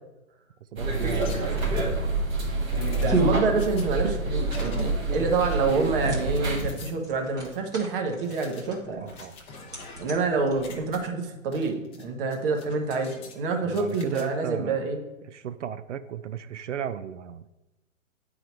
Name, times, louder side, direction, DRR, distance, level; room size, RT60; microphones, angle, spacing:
voice 1, 0.7-1.9 9.0-9.4 13.6-14.8 15.3-17.5, right 9 dB, 60° right, 13 dB, 0.5 m, -35 dB
sound 1, 0.8-6.6, right 2 dB, 75° right, 1.8 m, -27 dB
sound 2, 1.1-2.2 2.7-3.8 4.5-5.0 5.4-6.9 7.4-7.6 8.2-10.2 10.5-11.0 11.5-12.0 12.3-13.4 13.7-14.2, left 4 dB, 15° left, 0.7 m, -47 dB
sound 3, 3.0-11.1, right 2 dB, 10° right, 0.9 m, -34 dB
voice 2, 3.0-9.1 10.0-15.0, right 4 dB, 40° right, 3 dB, 1.2 m, -27 dB
9.0 x 3.9 x 4.5 m, 1.0 s
figure-of-eight pair, 125°, 41 cm